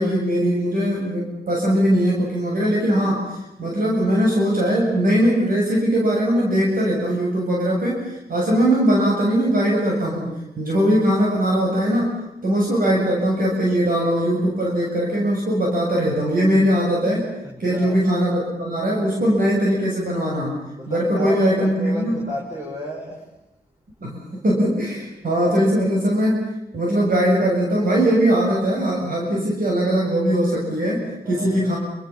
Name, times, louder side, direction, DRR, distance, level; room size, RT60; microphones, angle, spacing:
voice 1, 0.0-12.2 12.4-17.3 17.6-22.2 24.0-26.4 26.7-31.7, equal, 60° right, -3 dB, 7.5 m, -20 dB
voice 2, 17.4-18.0 19.2-19.3 20.7-23.3 31.2-31.7, right 1 dB, 20° right, -3 dB, 7.0 m, -33 dB
28.5 x 27.5 x 7.4 m, 0.93 s
wide cardioid pair, 130°, 16 cm